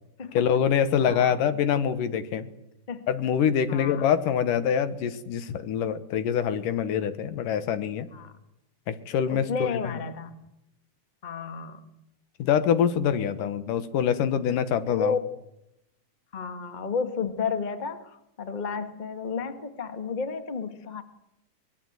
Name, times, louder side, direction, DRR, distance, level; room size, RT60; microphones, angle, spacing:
voice 1, 0.3-2.5 3.1-8.1 8.9-9.5 9.9-10.0 12.4-15.2, left 8 dB, 80° left, 12 dB, 3.0 m, -25 dB
voice 2, 1.0-1.4 2.9-3.1 3.7-4.1 8.1-8.3 9.3-10.4 11.2-11.9 13.4-13.5 14.9-15.2 16.3-21.0, left 5 dB, 25° left, 9 dB, 1.0 m, -32 dB
24.0 x 21.0 x 8.0 m, 0.83 s
omnidirectional pair, 3.8 m